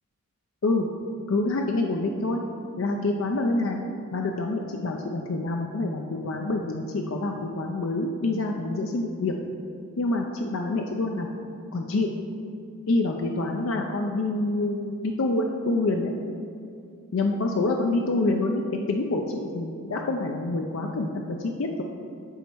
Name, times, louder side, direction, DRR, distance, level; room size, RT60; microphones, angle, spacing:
voice 1, 1.3-2.4 2.8-3.8 4.1-9.3 10.0-11.3 11.7-12.1 12.9-16.2 17.1-18.6 18.9-21.8, left 2 dB, 65° left, 2 dB, 0.5 m, -26 dB
10.5 x 4.1 x 4.5 m, 2.5 s
head